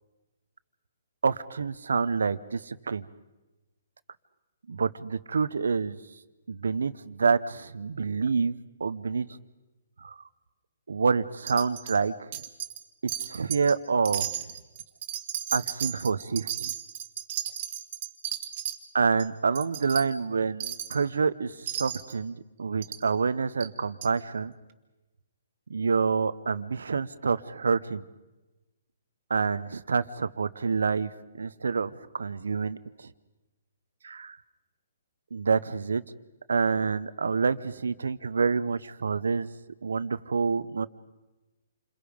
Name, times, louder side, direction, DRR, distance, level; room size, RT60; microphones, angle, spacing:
voice 1, 1.2-3.0 4.7-6.0 6.5-8.5 8.8-9.3 10.0-10.2 10.9-12.4 13.3-14.3 15.5-16.7 18.9-24.5 25.7-28.0 29.3-31.1 31.4-33.1 34.0-34.4 35.3-36.0 36.5-39.5 39.8-40.9, right 5 dB, 85° right, 16 dB, 0.9 m, -27 dB
Wind chime, 11.5-12.0 12.3-12.8 13.1-13.7 14.0-18.8 19.2-19.3 19.5-20.0 20.6-21.0 21.7-22.1 22.8-23.0 23.6-23.7 24.0-24.1, right 10 dB, 45° right, 1.7 m, -34 dB
28.5 x 22.0 x 5.2 m, 1.1 s
hypercardioid pair, 150°, 0 cm